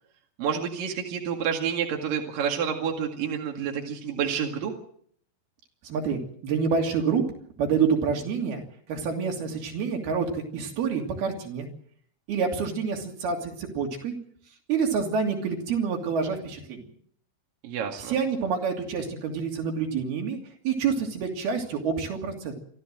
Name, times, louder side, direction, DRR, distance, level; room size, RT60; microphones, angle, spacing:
voice 1, 0.4-4.7 17.6-18.2, right 7 dB, 65° right, 1 dB, 3.7 m, -29 dB
voice 2, 5.8-7.2 7.6-11.7 12.3-14.2 14.7-16.9 18.0-20.4 20.6-22.5, right 6 dB, 80° right, 2 dB, 4.8 m, -27 dB
27.0 x 13.0 x 7.7 m, 0.62 s
omnidirectional pair, 4.3 m